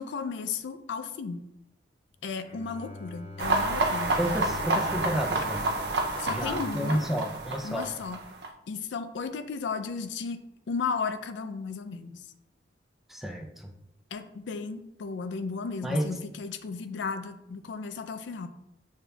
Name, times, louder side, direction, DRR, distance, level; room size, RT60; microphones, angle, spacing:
voice 1, 0.0-1.4 2.2-4.1 6.2-7.0 7.6-8.2 8.7-10.4 10.7-12.2 14.1-18.5, left 5 dB, 85° left, 9 dB, 0.4 m, -34 dB
Bowed string instrument, 2.4-6.9, left 3 dB, 40° left, 0.7 m, -45 dB
sound 1, 3.4-8.5, right 2 dB, 65° right, 0.5 m, -29 dB
voice 2, 4.2-5.7 6.3-7.9 13.1-13.7 15.8-16.2, equal, ahead, 3 dB, 0.3 m, -31 dB
6.7 x 2.7 x 2.3 m, 0.85 s
head